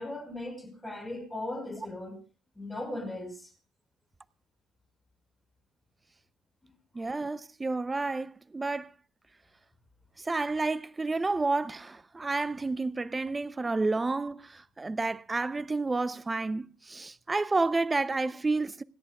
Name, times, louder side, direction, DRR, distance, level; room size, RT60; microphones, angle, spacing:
voice 1, 0.0-2.2 2.6-3.5 6.6-6.7, left 1 dB, 5° left, 5.4 m, -38 dB
voice 2, 6.9-8.9 10.2-18.8, right 3 dB, 15° right, 0.6 m, -30 dB
26.0 x 13.0 x 2.3 m
cardioid pair, 125°, 0 cm